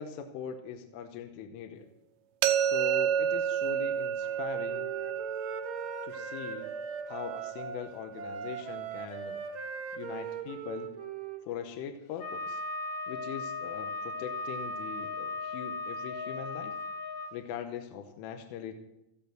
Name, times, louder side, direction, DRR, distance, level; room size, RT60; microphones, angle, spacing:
voice 1, 0.0-1.9 2.6-4.9 6.0-6.7 7.1-9.4 9.9-10.9 11.4-12.6 13.1-16.8 17.3-18.8, left 8 dB, 85° left, 6 dB, 3.6 m, -41 dB
sound 1, 2.4-8.3, right 9 dB, 80° right, 3.4 m, -31 dB
Wind instrument woodwind instrument, 4.2-7.8 8.2-11.8, right 6 dB, 50° right, 1.6 m, -40 dB
Wind instrument woodwind instrument 2, 12.2-17.3, left 3 dB, 60° left, 3.4 m, -37 dB
16.5 x 15.0 x 4.4 m, 0.90 s
omnidirectional pair, 5.7 m